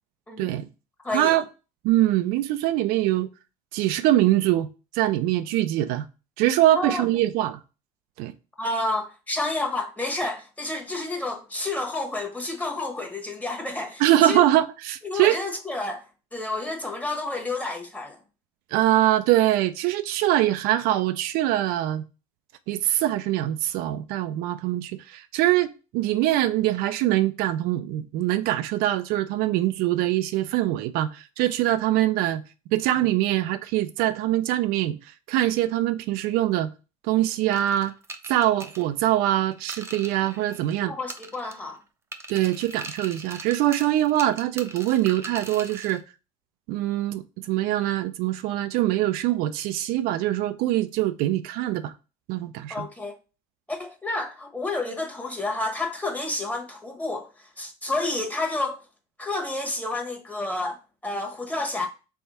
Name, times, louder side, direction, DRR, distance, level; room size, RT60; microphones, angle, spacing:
voice 1, 0.4-0.7 1.1-1.4 1.8-3.3 3.7-4.7 4.9-6.1 6.4-7.6 8.2-8.3 14.0-15.4 18.7-22.0 22.7-32.4 32.7-35.0 35.3-36.7 37.0-37.9 38.3-40.9 42.3-46.0 46.7-51.9 52.3-52.9, right 14 dB, 70° right, 0.4 m, -23 dB
voice 2, 1.0-1.4 6.7-7.0 8.6-14.4 15.0-16.0 16.3-18.2 40.9-41.8 52.7-53.2 53.7-58.8 59.2-61.9, left 2 dB, 10° left, 1.2 m, -30 dB
sound 1, 37.5-40.8 41.1-41.8 42.1-46.0, right 2 dB, 15° right, 0.6 m, -41 dB
3.5 x 3.4 x 4.2 m
supercardioid pair, 100°, 16 cm